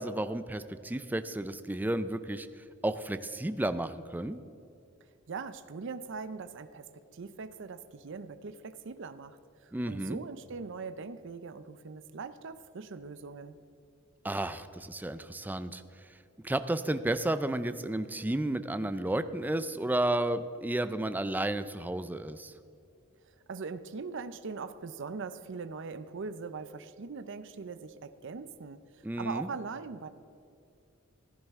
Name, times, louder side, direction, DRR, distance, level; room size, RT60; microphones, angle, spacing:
voice 1, 0.0-4.4 9.7-10.2 14.2-16.1 16.4-22.5 29.0-29.5, right 1 dB, 10° right, 11 dB, 0.4 m, -32 dB
voice 2, 5.3-13.6 23.5-30.1, right 4 dB, 60° right, 12 dB, 0.5 m, -41 dB
15.5 x 11.0 x 3.6 m, 2.6 s
head